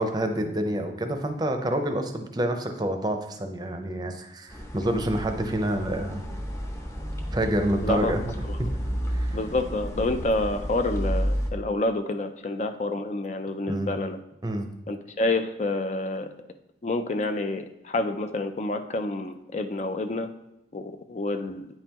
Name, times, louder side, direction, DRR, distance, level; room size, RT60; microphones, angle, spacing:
voice 1, 0.0-6.2 7.3-8.3 8.6-8.7 9.1-9.4 13.7-13.9 14.4-14.7, right 1 dB, 25° right, 6 dB, 0.6 m, -28 dB
sound 1, 4.5-11.5, equal, 15° left, 0.8 m, -31 dB
voice 2, 7.8-8.1 8.4-8.6 9.3-14.2 14.9-16.3 16.8-20.3 20.7-21.7, left 2 dB, 40° left, 8 dB, 0.4 m, -28 dB
8.9 x 5.5 x 2.9 m, 0.88 s
head